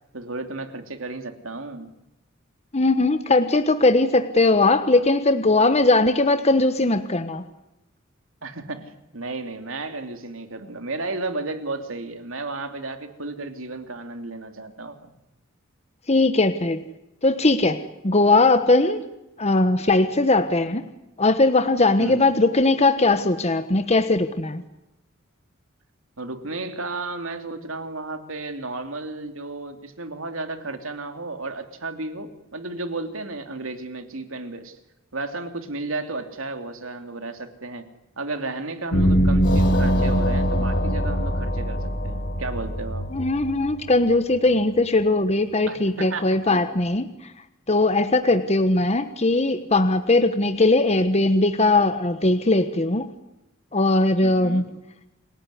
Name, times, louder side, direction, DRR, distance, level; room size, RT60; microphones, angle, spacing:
voice 1, 0.1-1.9 8.4-15.1 22.0-22.4 26.2-34.8 35.1-37.8 38.2-43.0 45.7-46.6 48.2-48.3 54.2-54.7, right 3 dB, 70° right, 7 dB, 2.9 m, -33 dB
voice 2, 2.7-7.4 16.1-16.8 17.2-19.0 19.4-20.8 21.2-24.6 43.1-47.1 47.7-53.1 53.7-54.7, left 2 dB, 30° left, 9 dB, 1.3 m, -19 dB
sound 1, 38.9-44.2, equal, 55° left, 4.2 m, -22 dB
28.5 x 18.0 x 9.8 m, 0.94 s
head